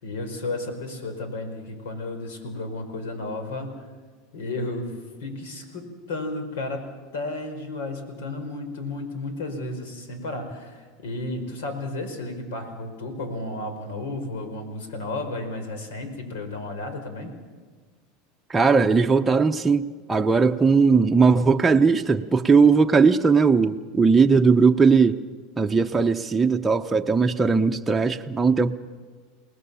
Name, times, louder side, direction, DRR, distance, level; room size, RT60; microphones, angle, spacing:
voice 1, 0.0-3.8 4.3-4.9 5.2-17.3, left 2 dB, 85° left, 4.9 m, -33 dB
voice 2, 18.5-25.2 25.6-28.7, right 5 dB, 10° right, 0.7 m, -19 dB
28.5 x 19.5 x 7.0 m
supercardioid pair, 135°, 0 cm